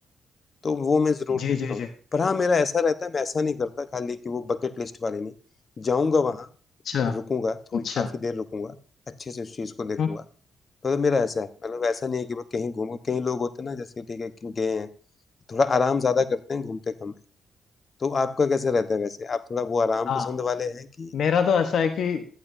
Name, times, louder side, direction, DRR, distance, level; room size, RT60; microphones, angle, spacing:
voice 1, 0.6-1.4 1.7-1.8 2.1-5.3 5.8-6.5 7.1-8.8 9.1-10.2 10.8-14.9 15.5-17.1 18.0-21.1, left 4 dB, 45° left, 11 dB, 1.0 m, -26 dB
voice 2, 1.3-1.9 6.8-7.2 7.7-8.1 10.0-10.1 20.1-20.3 21.1-22.3, left 7 dB, 70° left, 7 dB, 1.1 m, -24 dB
14.5 x 11.0 x 2.7 m, 0.40 s
cardioid pair, 70°, 0 cm